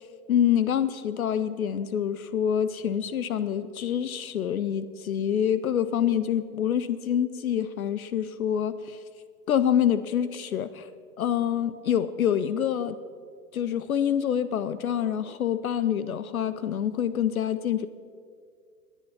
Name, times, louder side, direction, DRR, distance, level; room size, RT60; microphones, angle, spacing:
voice 1, 0.3-9.0 9.5-10.9 11.2-13.0 13.5-17.9, left 9 dB, 65° left, 15 dB, 0.7 m, -26 dB
18.5 x 10.0 x 5.7 m, 2.2 s
figure-of-eight pair, 105°, 46 cm